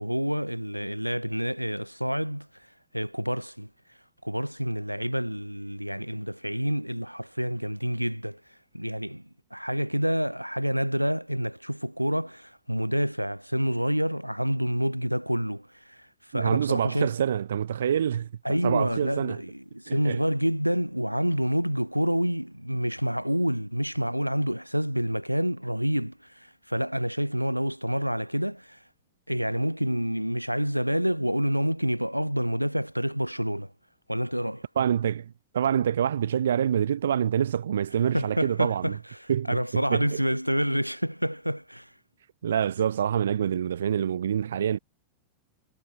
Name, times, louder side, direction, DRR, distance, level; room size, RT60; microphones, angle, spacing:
voice 1, 0.0-2.5 2.9-3.7 4.2-8.4 8.7-17.1 18.4-28.8 29.3-33.7 34.1-34.6 38.1-41.9, equal, 90° right, 1.4 m, -28 dB
voice 2, 16.3-18.3 18.6-19.4 19.9-20.2 34.7-39.0 39.3-40.2 42.4-44.8, right 9 dB, 65° right, 1.7 m, -26 dB
figure-of-eight pair, 90°, 0 cm